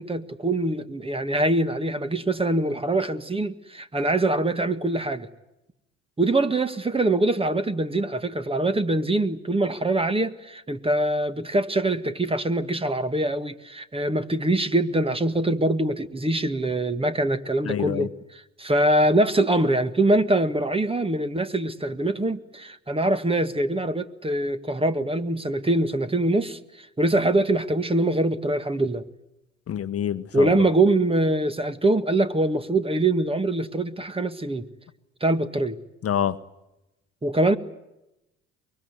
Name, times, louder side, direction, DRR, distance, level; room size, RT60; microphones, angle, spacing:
voice 1, 0.0-5.3 6.2-18.1 18.6-29.0 30.3-34.7 35.2-35.8 37.2-37.6, right 2 dB, 15° right, 12 dB, 1.8 m, -23 dB
voice 2, 17.6-18.1 29.7-30.7 36.0-36.4, left 9 dB, 40° left, 12 dB, 1.2 m, -27 dB
24.0 x 22.5 x 9.6 m, 0.92 s
hypercardioid pair, 70°, 36 cm